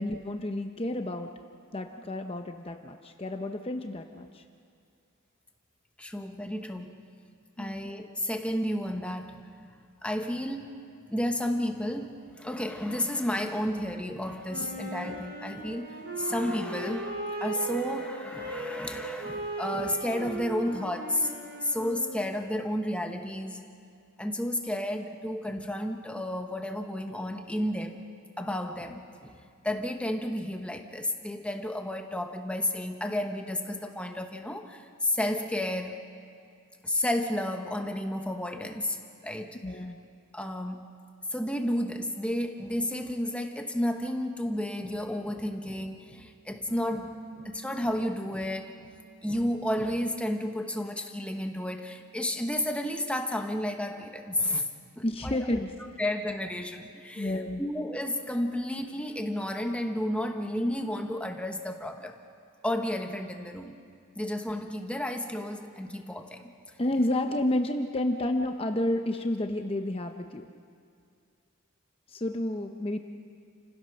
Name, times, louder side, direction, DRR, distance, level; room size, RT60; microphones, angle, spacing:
voice 1, 0.0-1.3 1.7-4.4 7.6-7.8 39.6-40.0 55.0-55.7 57.2-57.6 66.8-70.5 72.1-73.0, left 1 dB, 25° left, 5 dB, 0.7 m, -30 dB
voice 2, 6.0-7.0 7.6-9.5 10.0-10.8 11.1-15.9 16.2-21.3 21.6-23.7 24.2-28.1 28.4-36.0 36.8-39.6 40.3-41.0 41.3-48.7 49.2-54.7 55.0-55.6 56.0-62.1 62.6-63.8 64.2-66.5, left 1 dB, 5° left, 4 dB, 1.0 m, -32 dB
Wind instrument woodwind instrument, 14.5-22.5, right 2 dB, 55° right, 4.8 m, -37 dB
sound 1, 46.7-51.2 51.5-52.9, right 1 dB, 85° right, 3.0 m, -51 dB
29.5 x 16.0 x 6.4 m, 2.3 s
head